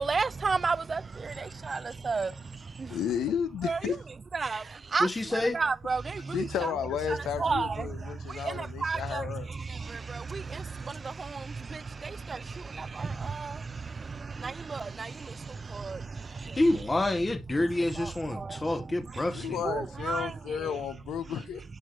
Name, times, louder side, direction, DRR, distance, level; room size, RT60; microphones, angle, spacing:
voice 1, 0.0-3.0 3.6-4.0 4.3-6.8 7.1-16.8 17.8-20.8 21.2-21.4, right 4 dB, 30° right, 0.4 m, -33 dB
voice 2, 2.9-4.0 6.3-9.5 19.3-21.6, left 8 dB, 80° left, 0.7 m, -33 dB
voice 3, 5.0-5.6 16.6-19.6, left 2 dB, 15° left, 0.8 m, -28 dB
10.5 x 6.4 x 2.4 m
cardioid pair, 115°, 0 cm